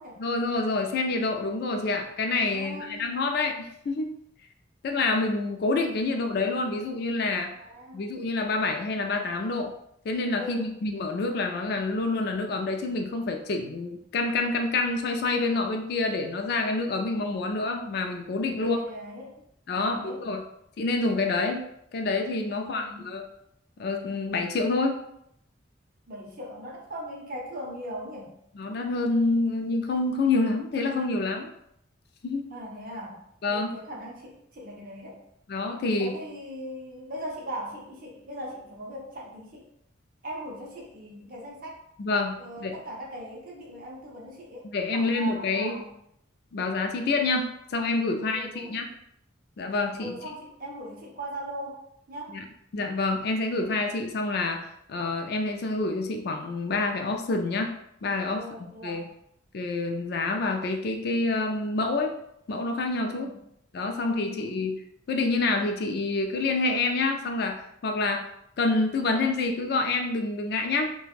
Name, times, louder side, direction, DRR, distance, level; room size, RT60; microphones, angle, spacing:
voice 1, 0.2-4.1 4.8-7.5 7.9-9.7 10.0-18.8 19.7-20.4 20.8-21.7 21.9-23.2 23.8-25.0 28.6-31.5 32.2-32.5 33.4-33.7 35.5-36.2 42.0-42.3 42.6-42.7 44.6-45.8 46.5-48.9 49.6-50.2 52.3-52.4 52.7-57.7 58.0-59.0 59.5-62.2 62.5-63.3 63.7-64.8 65.1-68.3 68.6-71.0, left 3 dB, 55° left, 4 dB, 0.3 m, -27 dB
voice 2, 2.5-3.2 7.6-8.1 10.4-10.8 18.5-19.4 19.7-20.2 22.5-23.1 26.1-28.3 32.5-33.2 33.5-35.2 36.0-39.6 40.2-41.8 42.4-44.7 44.9-45.9 48.1-48.8 50.0-51.8 52.1-52.4 58.3-59.1 63.1-63.4 63.9-64.6, equal, 45° right, -2 dB, 0.6 m, -39 dB
3.2 x 2.2 x 2.4 m, 0.75 s
head